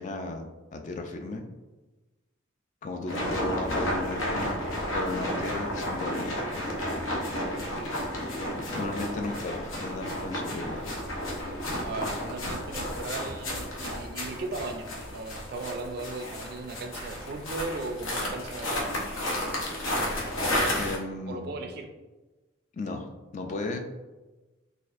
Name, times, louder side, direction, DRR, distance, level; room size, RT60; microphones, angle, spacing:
voice 1, 0.0-1.4 2.8-4.5 4.9-6.3 8.7-10.8 20.8-21.5 22.7-23.1 23.3-23.8, left 2 dB, 40° left, 4 dB, 0.3 m, -35 dB
sound 1, 3.1-21.0, left 1 dB, 85° left, 0.8 m, -32 dB
voice 2, 11.7-19.0 21.3-21.9, right 3 dB, 50° right, 5 dB, 0.4 m, -37 dB
4.1 x 2.5 x 2.4 m, 1.2 s
head